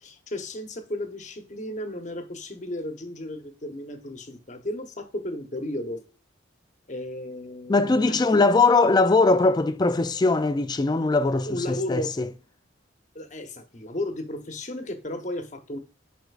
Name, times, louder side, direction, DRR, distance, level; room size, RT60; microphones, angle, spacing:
voice 1, 0.0-6.0 6.9-8.4 11.5-12.1 13.1-15.8, left 1 dB, 35° left, 0.9 m, -34 dB
voice 2, 7.7-12.3, left 3 dB, 20° left, 0.3 m, -21 dB
8.0 x 5.1 x 2.4 m
head